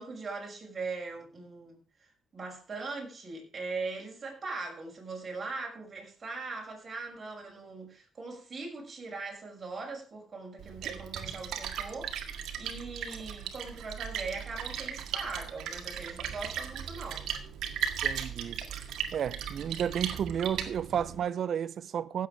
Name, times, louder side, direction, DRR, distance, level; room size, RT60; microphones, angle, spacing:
voice 1, 0.0-1.8 2.3-17.3, right 3 dB, 35° right, 6.2 m, -40 dB
Splash splatter, 10.6-21.2, right 8 dB, 80° right, 1.9 m, -37 dB
voice 2, 18.0-18.6 19.1-22.3, right 8 dB, 60° right, 0.5 m, -32 dB
16.0 x 7.7 x 5.1 m
cardioid pair, 90°, 0 cm